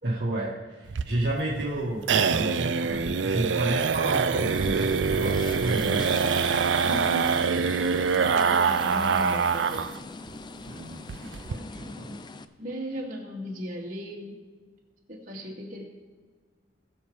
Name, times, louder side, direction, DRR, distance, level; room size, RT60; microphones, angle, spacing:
voice 1, 0.0-6.1 10.7-11.1 11.7-12.2, right 1 dB, 65° right, -6 dB, 1.8 m, -31 dB
sound 1, 0.9-10.0 10.3-10.4 10.7-10.8 11.1-11.5, right 5 dB, 90° right, 0.5 m, -25 dB
sound 2, 4.5-12.5, left 3 dB, 25° left, 0.4 m, -41 dB
voice 2, 6.8-7.6 8.1-10.0 11.5-11.8 12.6-14.4 15.1-15.8, equal, 45° right, -4 dB, 2.6 m, -37 dB
20.0 x 7.0 x 3.4 m, 1.5 s
head